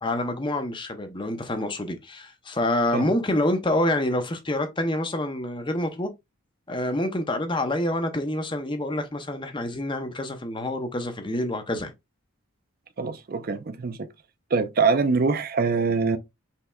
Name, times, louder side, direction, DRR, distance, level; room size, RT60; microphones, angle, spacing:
voice 1, 0.0-6.1 6.7-11.9, left 1 dB, 25° left, 0.6 m, -27 dB
voice 2, 13.0-14.1 14.5-16.2, right 4 dB, 45° right, 0.4 m, -24 dB
5.6 x 3.2 x 2.2 m
head